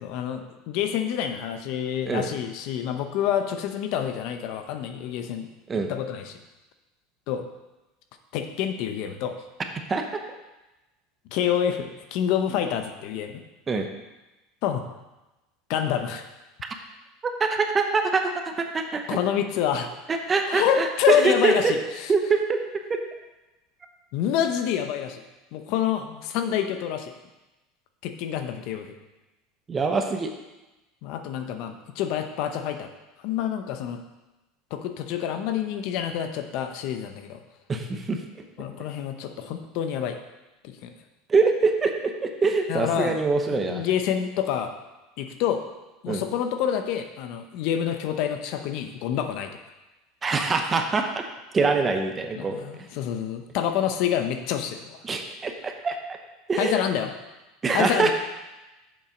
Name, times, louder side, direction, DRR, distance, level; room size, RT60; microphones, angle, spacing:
voice 1, 0.0-5.5 5.9-6.4 7.3-7.4 8.3-9.4 11.3-13.4 14.6-14.8 15.7-16.2 19.1-19.9 20.5-22.1 24.1-25.2 25.5-27.1 28.0-28.9 31.0-32.9 33.2-34.0 34.7-37.4 38.6-40.2 40.6-40.9 42.7-44.7 45.2-45.6 46.0-49.5 52.4-55.0 56.6-57.1 57.7-58.1, left 9 dB, 60° left, 7 dB, 0.8 m, -27 dB
voice 2, 9.9-10.2 13.7-13.9 17.4-19.2 20.1-21.7 22.1-22.6 29.7-30.3 37.7-38.2 41.3-43.8 46.1-46.2 50.2-51.1 51.5-52.6 55.0-56.2 56.5-56.8 57.6-58.1, right 4 dB, 20° right, 5 dB, 0.9 m, -24 dB
7.3 x 5.6 x 5.2 m, 1.0 s
supercardioid pair, 120°, 0 cm